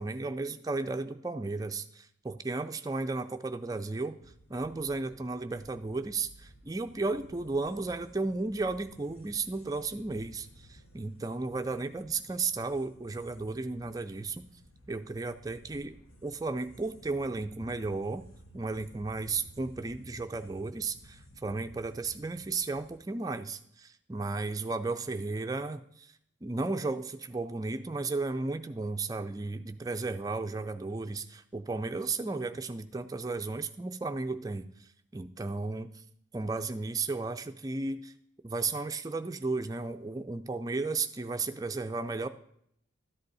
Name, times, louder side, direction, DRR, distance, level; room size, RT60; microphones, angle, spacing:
voice 1, 0.0-4.2 4.5-14.4 14.9-16.0 16.2-18.3 18.5-26.1 26.4-35.9 36.3-38.1 38.4-42.3, right 3 dB, 15° right, 7 dB, 0.4 m, -34 dB
sound 1, 4.2-23.0, equal, 80° left, 1.4 m, -55 dB
13.0 x 8.0 x 4.1 m, 0.72 s
head